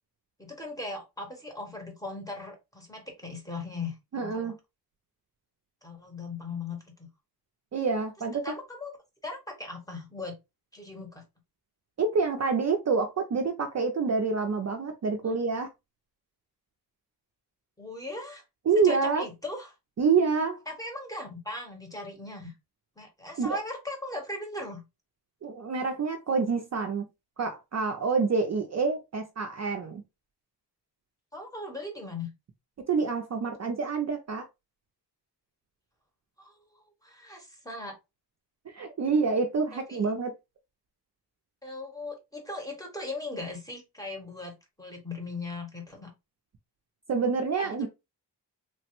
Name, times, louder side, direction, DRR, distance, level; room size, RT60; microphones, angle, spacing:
voice 1, 0.4-4.5 5.8-7.1 8.4-8.9 9.2-10.4 10.7-11.2 15.2-15.3 17.8-18.4 18.8-19.7 20.7-22.5 23.0-24.8 31.3-32.3 36.4-37.9 39.7-40.0 41.6-46.1 47.6-47.9, left 2 dB, 10° left, 0.9 m, -39 dB
voice 2, 4.1-4.5 7.7-8.4 12.0-15.7 18.7-19.2 20.0-20.6 23.4-23.6 25.4-27.1 27.4-30.0 32.9-34.5 38.7-40.3 47.1-47.9, right 4 dB, 40° right, 0.4 m, -27 dB
3.2 x 2.1 x 2.9 m
wide cardioid pair, 120°, 42 cm